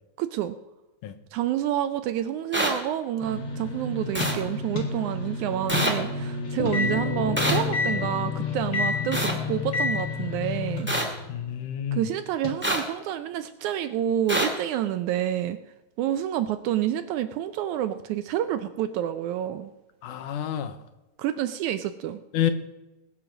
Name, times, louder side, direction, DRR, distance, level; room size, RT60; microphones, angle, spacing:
voice 1, 0.2-0.5 1.3-10.9 11.9-15.6 16.0-19.7 21.2-22.2, right 11 dB, 80° right, 11 dB, 1.8 m, -28 dB
sound 1, 2.5-2.7 4.1-4.3 5.7-5.9 7.4-7.6 9.1-9.3 10.9-11.0 12.6-12.8 14.3-14.5, right 1 dB, 5° right, 1.7 m, -25 dB
sound 2, 3.2-11.4 12.4-12.5, left 4 dB, 40° left, 1.5 m, -30 dB
sound 3, 6.6-11.2, left 6 dB, 60° left, 1.6 m, -37 dB
voice 2, 11.3-12.0 20.0-20.8 22.3-22.5, left 10 dB, 75° left, 10 dB, 2.3 m, -28 dB
20.0 x 8.0 x 6.0 m, 1.0 s
omnidirectional pair, 3.9 m